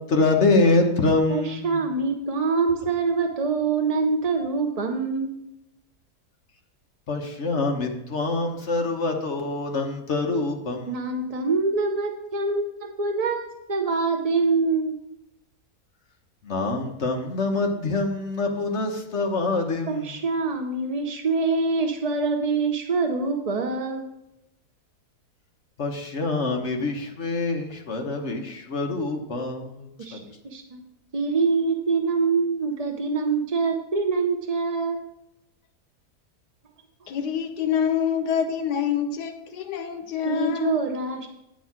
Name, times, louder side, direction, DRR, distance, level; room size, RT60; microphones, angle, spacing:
voice 1, 0.1-1.8 7.1-10.9 16.4-20.2 25.8-30.2, left 3 dB, 50° left, 3 dB, 1.2 m, -25 dB
voice 2, 1.3-5.3 10.9-14.9 19.9-24.1 30.0-30.2 30.4-30.8 31.1-35.0 40.2-41.3, right 4 dB, 55° right, 3 dB, 0.4 m, -25 dB
voice 3, 37.1-40.8, left 8 dB, 85° left, 7 dB, 1.4 m, -26 dB
9.4 x 4.6 x 5.8 m, 0.85 s
omnidirectional pair, 1.7 m